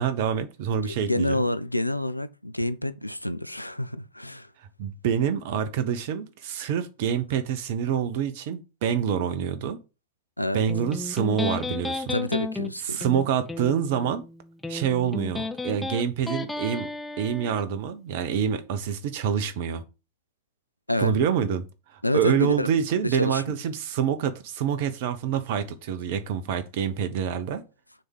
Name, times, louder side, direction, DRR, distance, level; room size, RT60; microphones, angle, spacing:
voice 1, 0.0-1.4 4.8-9.8 10.5-12.1 12.9-14.2 14.7-16.9 17.2-19.8 21.0-21.6 21.9-27.6, right 8 dB, 50° right, 0.9 m, -26 dB
voice 2, 0.7-4.5 10.4-10.6 12.1-13.0 20.9-21.1 22.0-22.7 23.0-23.6, left 1 dB, 85° left, 0.4 m, -28 dB
Electric guitar, 10.7-17.7, left 3 dB, 5° left, 0.8 m, -33 dB
6.6 x 3.7 x 6.1 m
figure-of-eight pair, 90°, 0 cm